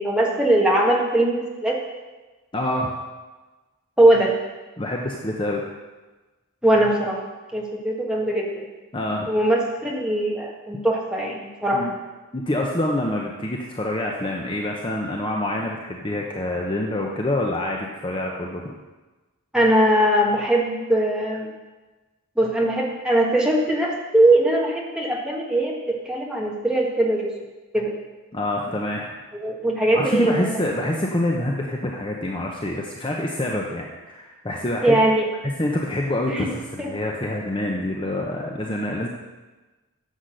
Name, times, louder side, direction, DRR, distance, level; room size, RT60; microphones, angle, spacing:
voice 1, 0.0-1.8 4.0-4.3 6.6-7.2 7.5-8.6 9.3-11.9 19.5-21.5 22.4-25.7 26.0-27.3 27.7-27.9 29.3-30.5 34.8-35.3 36.3-36.5 36.8-36.9, right 1 dB, 5° right, -3 dB, 1.6 m, -20 dB
voice 2, 2.5-3.0 4.8-5.6 8.9-9.3 11.7-11.9 12.3-18.7 28.3-29.1 29.9-35.0 35.4-39.1, left 1 dB, 20° left, 0 dB, 0.8 m, -26 dB
10.0 x 7.2 x 6.5 m, 1.2 s
head